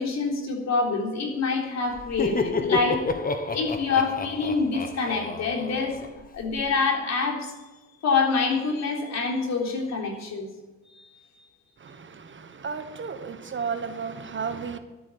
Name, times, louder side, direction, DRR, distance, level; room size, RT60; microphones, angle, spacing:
voice 1, 0.0-3.0 3.5-6.0 6.3-7.5 8.0-10.5 11.0-11.1, left 4 dB, 60° left, 3.8 m, -26 dB
Laughter, 1.9-6.6, left 4 dB, 30° left, 1.4 m, -30 dB
voice 2, 12.6-14.8, right 5 dB, 40° right, 1.3 m, -32 dB
13.5 x 8.5 x 8.7 m
cardioid pair, 90°, 30 cm